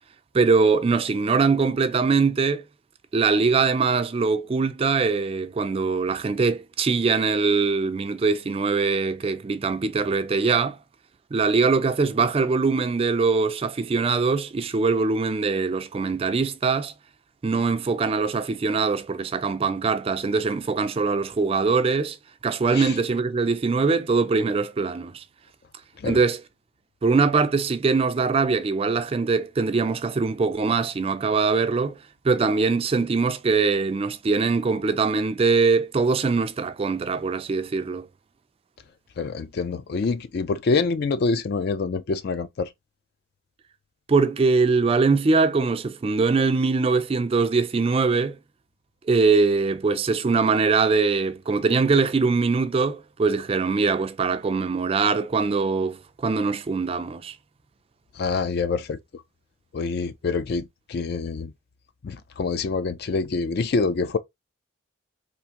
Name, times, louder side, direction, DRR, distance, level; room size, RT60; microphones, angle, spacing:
voice 1, 0.3-2.6 3.1-10.8 11.3-16.9 17.4-22.2 22.4-25.2 26.0-26.4 27.0-32.0 32.2-38.1 44.1-48.4 49.1-57.3, right 4 dB, 30° right, 0.3 m, -22 dB
voice 2, 39.2-42.7 58.2-59.2 59.7-61.5 62.0-64.2, left 4 dB, 50° left, 0.3 m, -26 dB
3.5 x 2.5 x 2.8 m
head